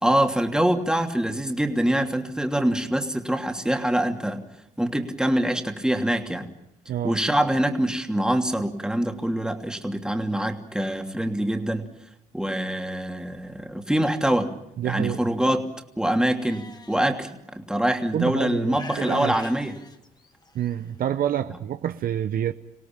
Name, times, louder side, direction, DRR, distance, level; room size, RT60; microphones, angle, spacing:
voice 1, 0.0-4.4 4.8-6.5 7.0-11.9 12.3-14.5 14.8-15.7 16.0-19.8, right 1 dB, 5° right, 4 dB, 2.9 m, -24 dB
voice 2, 6.9-7.2 14.8-15.2 18.1-19.3 20.5-22.5, right 10 dB, 60° right, 10 dB, 0.9 m, -27 dB
Livestock farm animals working animals, 16.4-17.0 17.9-18.0 18.7-20.7, left 2 dB, 25° left, 2.2 m, -41 dB
26.5 x 17.5 x 8.9 m, 0.84 s
supercardioid pair, 70°, 17 cm